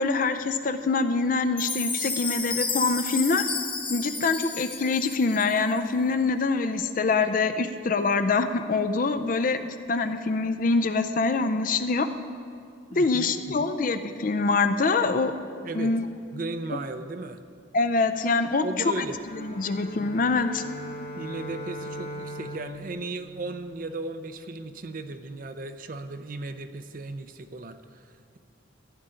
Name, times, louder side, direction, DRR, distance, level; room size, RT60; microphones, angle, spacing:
voice 1, 0.0-3.4 3.9-12.1 12.9-15.3 15.7-16.1 17.7-18.7 19.0-19.1 19.4-20.6, left 3 dB, 45° left, 9 dB, 0.4 m, -25 dB
Chime, 1.6-5.8, left 4 dB, 25° left, 1.1 m, -32 dB
voice 2, 12.9-13.3 13.6-13.7 15.6-15.9 16.3-17.4 18.6-19.2 21.2-28.4, right 3 dB, 45° right, 9 dB, 0.5 m, -36 dB
sound 1, 19.1-23.9, right 1 dB, 75° left, 3.4 m, -39 dB
15.0 x 9.5 x 3.8 m, 2.3 s
head